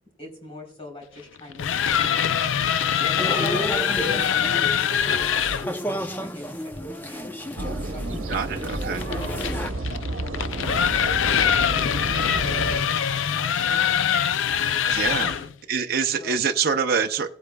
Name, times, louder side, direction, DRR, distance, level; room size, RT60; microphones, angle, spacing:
voice 1, 0.2-2.1 3.0-9.7 10.1-13.9 15.0-15.5 16.2-16.4, left 2 dB, 30° left, 3.6 m, -43 dB
sound 1, 1.4-5.7 8.3-15.5, left 8 dB, 70° left, 0.4 m, -23 dB
sound 2, 3.2-9.7, equal, 10° left, 0.5 m, -32 dB
sound 3, 7.6-12.8, right 2 dB, 85° right, 0.9 m, -31 dB
voice 2, 8.1-9.0 14.8-15.3 15.7-17.3, right 6 dB, 50° right, 0.5 m, -25 dB
18.0 x 8.4 x 2.3 m
head